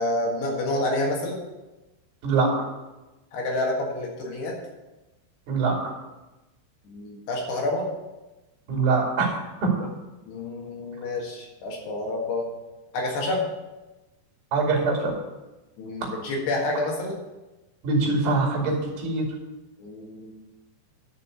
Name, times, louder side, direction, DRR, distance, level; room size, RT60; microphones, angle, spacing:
voice 1, 0.0-1.4 3.3-4.6 6.9-7.9 10.3-12.5 12.9-13.5 15.8-17.2 19.8-20.3, left 2 dB, 70° left, 0 dB, 3.5 m, -28 dB
voice 2, 8.7-9.3 9.6-9.7 14.5-15.1 17.8-19.3, right 3 dB, 55° right, 0 dB, 3.9 m, -23 dB
11.0 x 5.4 x 6.9 m, 1.1 s
omnidirectional pair, 5.3 m